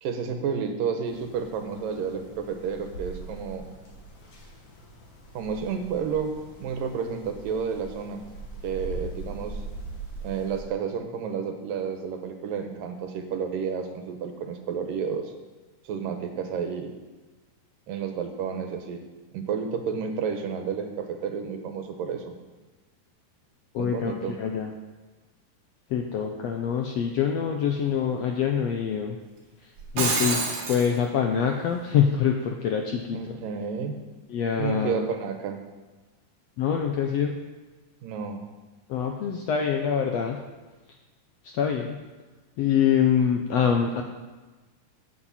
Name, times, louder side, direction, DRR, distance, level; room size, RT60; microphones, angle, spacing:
voice 1, 0.0-3.7 5.3-8.2 8.6-9.6 10.2-15.3 15.9-16.9 17.9-19.0 19.3-22.4 23.8-24.4 33.1-34.0 34.6-35.6 38.0-38.4, right 6 dB, 85° right, 5 dB, 2.8 m, -31 dB
sound 1, 1.0-10.6, right 2 dB, 55° left, 3.4 m, -41 dB
voice 2, 23.7-24.7 25.9-29.2 29.6-33.4 34.3-35.1 36.6-37.4 38.9-40.4 41.4-42.0 42.6-44.0, left 7 dB, 80° left, 3 dB, 1.5 m, -25 dB
Shatter, 29.8-30.9, right 3 dB, 60° right, 3.4 m, -26 dB
15.0 x 8.9 x 4.3 m, 1.2 s
omnidirectional pair, 3.8 m